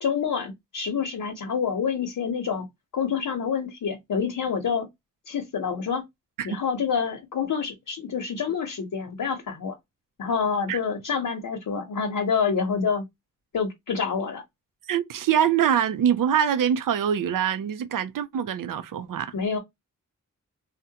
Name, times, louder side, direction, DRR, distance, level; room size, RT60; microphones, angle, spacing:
voice 1, 0.0-2.7 2.9-4.9 5.3-6.0 6.4-9.7 10.2-13.0 13.5-14.4 19.3-19.6, left 6 dB, 85° left, 0.8 m, -27 dB
voice 2, 14.9-19.3, right 9 dB, 90° right, 0.5 m, -24 dB
3.6 x 2.1 x 2.8 m
wide cardioid pair, 120°, 32 cm